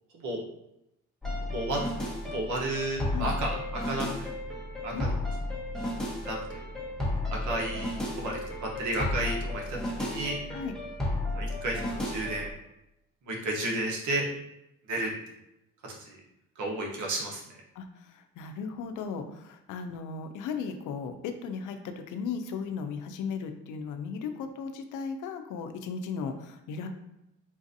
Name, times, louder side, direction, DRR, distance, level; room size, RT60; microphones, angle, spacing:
sound 1, 1.2-12.5, left 1 dB, ahead, 0.9 m, -33 dB
voice 1, 2.2-4.3 4.8-5.1 6.2-6.6 7.3-10.4 11.3-12.5 13.2-14.3 14.9-15.1 15.9-16.2 16.6-17.6, right 1 dB, 75° right, -1 dB, 1.0 m, -32 dB
voice 2, 4.9-5.3 10.5-10.7 17.8-26.9, left 5 dB, 85° left, 7 dB, 0.5 m, -36 dB
3.9 x 2.5 x 2.6 m, 0.84 s
cardioid pair, 90°, 30 cm